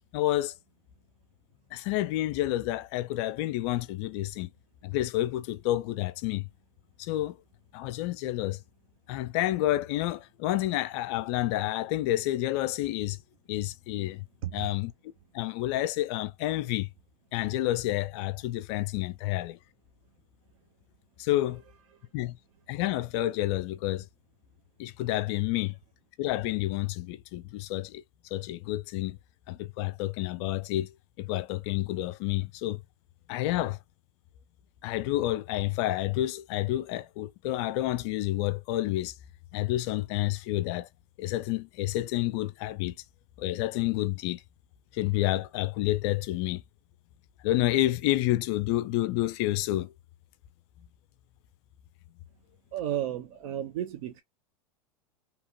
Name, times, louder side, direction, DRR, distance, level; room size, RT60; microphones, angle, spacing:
voice 1, 0.1-0.5 1.7-4.5 4.8-6.5 7.0-7.4 7.7-8.6 9.1-13.2 13.5-14.2 14.5-14.9 15.3-16.9 17.3-19.6 21.2-21.6 22.1-22.4 22.7-24.1 24.8-25.8 26.2-28.0 28.3-29.2 29.5-30.9 31.2-32.8 33.3-33.8 34.8-39.1 39.5-40.9 41.2-42.9 43.4-44.4 44.9-46.6 47.4-49.9, left 15 dB, 45° left, 0.4 m, -29 dB
voice 2, 52.7-54.2, right 11 dB, 55° right, 0.6 m, -32 dB
2.9 x 2.9 x 2.2 m
hypercardioid pair, 95°, 20 cm